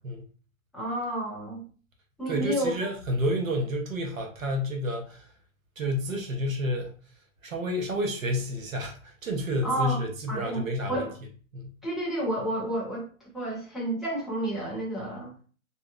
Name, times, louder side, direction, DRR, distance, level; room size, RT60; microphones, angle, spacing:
voice 1, 0.7-1.6 2.2-2.9 9.6-11.1 11.8-15.3, right 1 dB, ahead, -8 dB, 0.3 m, -31 dB
voice 2, 2.3-5.2 5.8-6.9 7.4-11.1 11.5-11.7, equal, 65° right, 2 dB, 0.8 m, -30 dB
2.6 x 2.0 x 2.3 m, 0.40 s
hypercardioid pair, 180°, 42 cm